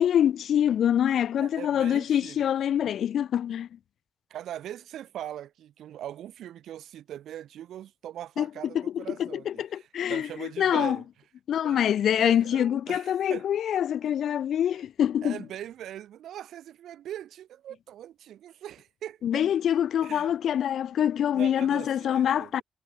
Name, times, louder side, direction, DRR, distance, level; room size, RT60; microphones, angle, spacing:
voice 1, 0.0-3.7 8.4-8.5 8.7-11.0 11.5-15.4 19.2-22.6, left 9 dB, 70° left, 1.3 m, -25 dB
voice 2, 1.4-2.4 4.3-11.0 11.6-11.8 12.2-13.5 15.2-19.5 20.0-20.3 21.3-22.6, right 11 dB, 85° right, 7.9 m, -41 dB
cardioid pair, 145°, 0 cm